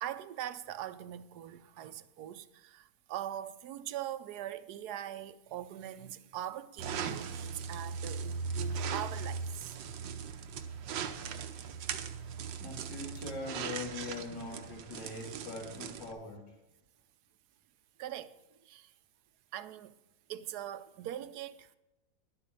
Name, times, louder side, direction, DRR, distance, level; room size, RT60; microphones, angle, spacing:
voice 1, 0.0-10.0 11.1-11.3 18.0-18.9 19.5-20.0 20.3-21.8, right 11 dB, 70° right, 1.1 m, -42 dB
sound 1, 6.8-16.1, right 6 dB, 85° right, 1.5 m, -39 dB
voice 2, 12.6-16.5, left 3 dB, 75° left, 2.4 m, -42 dB
11.5 x 8.3 x 5.5 m
omnidirectional pair, 1.9 m